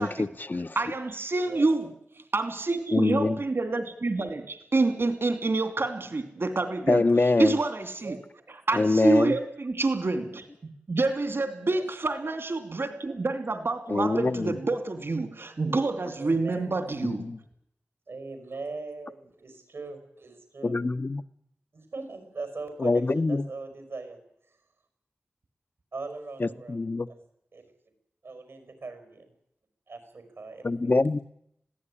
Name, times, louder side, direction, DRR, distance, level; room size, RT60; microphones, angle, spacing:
voice 1, 0.0-0.8 2.9-3.4 6.9-7.6 8.7-9.3 13.9-14.5 17.1-17.4 20.6-21.2 22.8-23.5 26.4-27.1 30.6-31.2, left 3 dB, 50° left, 10 dB, 0.8 m, -24 dB
voice 2, 0.7-1.9 2.3-8.2 8.7-17.3, right 3 dB, 70° right, 8 dB, 2.7 m, -28 dB
voice 3, 16.1-16.7 18.1-20.8 21.7-24.2 25.9-26.8 27.0-27.2 27.5-27.6 28.2-29.3 29.9-31.0, right 3 dB, 90° right, 7 dB, 5.2 m, -40 dB
21.5 x 16.0 x 10.0 m, 0.77 s
cardioid pair, 40°, 4 cm